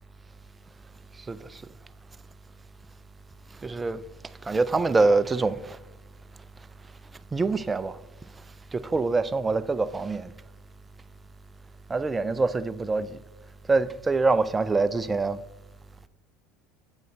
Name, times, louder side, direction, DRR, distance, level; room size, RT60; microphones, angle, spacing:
voice 1, 1.3-1.6 3.6-4.0 4.4-5.8 7.3-8.0 8.7-10.3 11.9-13.2 13.7-15.4, right 3 dB, 20° right, 0.5 m, -25 dB
9.2 x 8.0 x 3.2 m
figure-of-eight pair, 70°, 0 cm